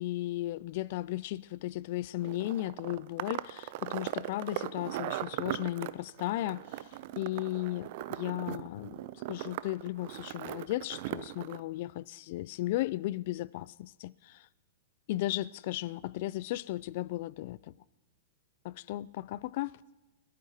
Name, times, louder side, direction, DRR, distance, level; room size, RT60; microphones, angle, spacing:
voice 1, 0.0-6.9 7.2-14.5 15.1-17.7 18.6-19.8, left 16 dB, 55° left, 0.3 m, -35 dB
sound 1, 2.2-11.6, right 15 dB, 55° right, 0.5 m, -39 dB
22.0 x 12.0 x 2.9 m
hypercardioid pair, 110°, 0 cm